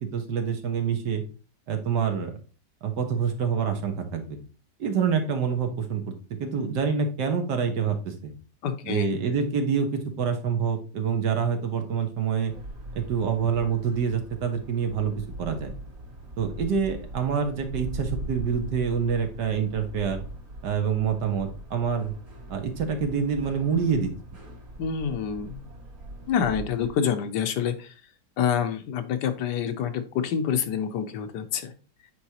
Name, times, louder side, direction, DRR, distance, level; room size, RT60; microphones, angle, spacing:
voice 1, 0.1-1.2 1.7-2.3 2.8-4.4 4.8-6.1 6.4-8.3 8.8-12.5 12.9-15.1 15.4-15.7 16.4-20.2 20.6-22.1 22.5-24.1, right 6 dB, 90° right, 5 dB, 1.8 m, -26 dB
voice 2, 8.6-9.2 24.8-25.6 26.3-27.9 28.4-31.7, left 8 dB, 85° left, 8 dB, 1.4 m, -27 dB
sound 1, 12.5-26.9, right 1 dB, 60° right, 2.4 m, -41 dB
8.1 x 4.7 x 2.9 m, 0.37 s
omnidirectional pair, 1.8 m